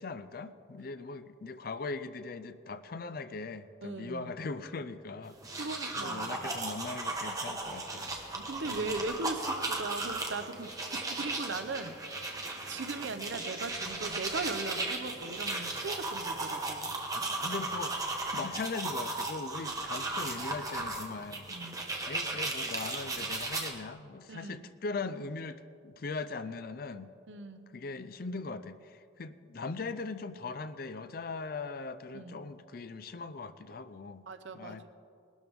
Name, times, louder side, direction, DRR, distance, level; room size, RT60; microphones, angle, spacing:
voice 1, 0.0-5.6 6.0-8.2 8.7-9.0 17.1-21.4 22.1-27.1 27.7-34.3 34.5-34.9, left 3 dB, 50° left, 12 dB, 0.5 m, -40 dB
voice 2, 3.8-4.3 5.6-6.4 8.3-12.1 12.7-16.9 18.4-18.5 21.5-21.8 24.3-24.7 27.3-27.7 32.1-32.4 34.3-34.9, right 3 dB, 75° right, 9 dB, 0.8 m, -39 dB
sound 1, 5.3-23.7, right 2 dB, 20° right, 1.1 m, -36 dB
19.5 x 12.5 x 3.6 m, 2.6 s
head